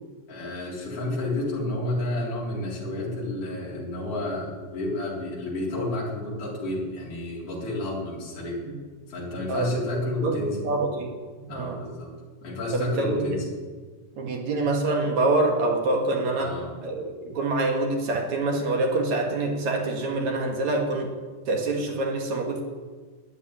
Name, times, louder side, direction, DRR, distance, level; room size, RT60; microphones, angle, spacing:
voice 1, 0.3-8.6 9.1-10.6 11.5-12.1 12.4-13.4 16.4-16.7, left 2 dB, 45° left, -5 dB, 4.7 m, -30 dB
voice 2, 9.5-9.8 10.2-11.8 12.7-13.3 14.2-21.1 21.5-22.6, right 2 dB, 60° right, 2 dB, 3.1 m, -26 dB
12.5 x 9.2 x 9.9 m, 1.5 s
omnidirectional pair, 3.8 m